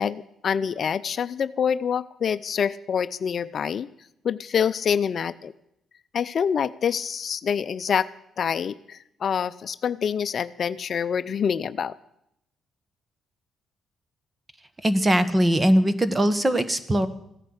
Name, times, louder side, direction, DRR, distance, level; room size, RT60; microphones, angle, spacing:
voice 1, 0.0-3.9 4.2-5.5 6.1-8.1 8.4-11.9, left 7 dB, 55° left, 14 dB, 0.6 m, -26 dB
voice 2, 14.8-17.1, equal, 20° right, 13 dB, 1.5 m, -21 dB
16.0 x 10.0 x 8.1 m, 0.77 s
cardioid pair, 90°, 0 cm